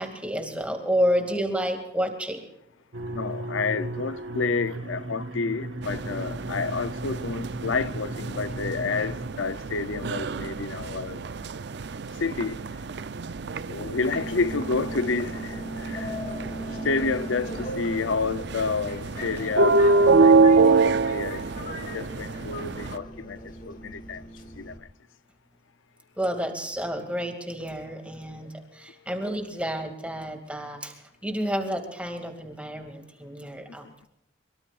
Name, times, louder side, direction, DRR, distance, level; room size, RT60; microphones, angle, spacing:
voice 1, 0.0-2.4 16.5-16.9 26.2-34.1, equal, 5° right, 2.3 m, -30 dB
sound 1, 2.9-9.3, right 1 dB, 80° right, 1.5 m, -35 dB
voice 2, 3.1-11.2 12.2-12.6 13.7-16.2 16.7-24.2 24.5-24.9 28.2-28.3 33.8-33.9, left 4 dB, 80° left, 0.6 m, -30 dB
sound 2, 5.8-23.0, right 3 dB, 60° right, 0.5 m, -26 dB
Subway metro underground, 14.0-24.8, equal, 45° left, 2.1 m, -38 dB
23.5 x 23.0 x 2.5 m
head